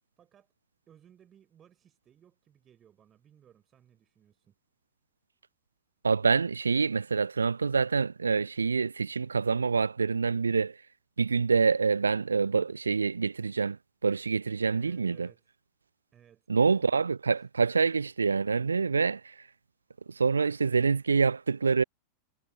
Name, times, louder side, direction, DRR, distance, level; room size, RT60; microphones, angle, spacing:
voice 1, 0.2-0.5 0.9-4.6 14.7-15.4 16.1-17.0 17.3-17.5, right 9 dB, 25° right, 3.7 m, -61 dB
voice 2, 6.0-10.8 11.2-15.3 16.5-19.3 20.1-21.8, right 5 dB, 75° right, 0.3 m, -26 dB
figure-of-eight pair, 90°, 0 cm